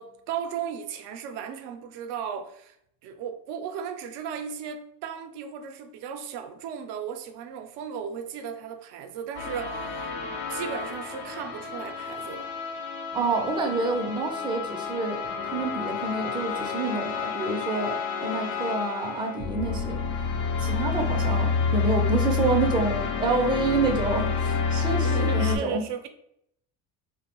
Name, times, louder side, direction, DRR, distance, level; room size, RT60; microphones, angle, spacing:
voice 1, 0.0-2.8 3.0-12.5 25.0-26.1, right 7 dB, 85° right, 0.5 m, -36 dB
sound 1, 9.3-25.6, left 5 dB, 65° left, 0.6 m, -29 dB
voice 2, 13.1-20.0 20.6-25.8, right 3 dB, 15° right, 0.4 m, -28 dB
2.5 x 2.1 x 2.8 m
cardioid pair, 95°, 40 cm